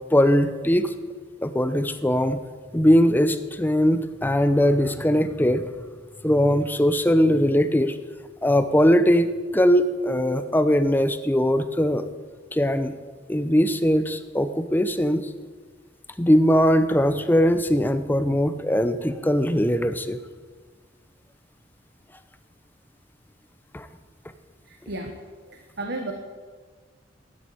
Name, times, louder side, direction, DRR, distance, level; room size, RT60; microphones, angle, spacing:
voice 1, 0.1-0.9 1.4-2.4 2.7-5.6 6.2-8.0 8.4-12.1 12.5-12.9 13.3-15.3 16.2-20.2 23.7-23.9, equal, 10° left, 11 dB, 0.7 m, -20 dB
voice 2, 24.6-25.2 25.5-26.1, right 2 dB, 60° right, 4 dB, 1.3 m, -33 dB
13.0 x 9.4 x 8.5 m, 1.5 s
head